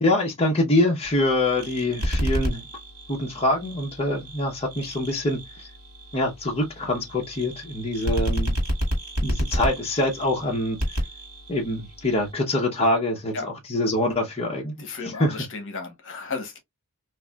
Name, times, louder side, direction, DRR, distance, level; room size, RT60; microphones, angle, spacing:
voice 1, 0.0-2.7 3.1-5.7 6.1-8.6 9.2-10.8 11.5-14.7 15.0-15.4, left 1 dB, 25° left, 0.7 m, -25 dB
sound 1, 1.0-12.3, equal, 80° right, 1.2 m, -31 dB
voice 2, 14.8-16.6, left 4 dB, 60° left, 0.9 m, -34 dB
3.2 x 2.4 x 2.2 m
head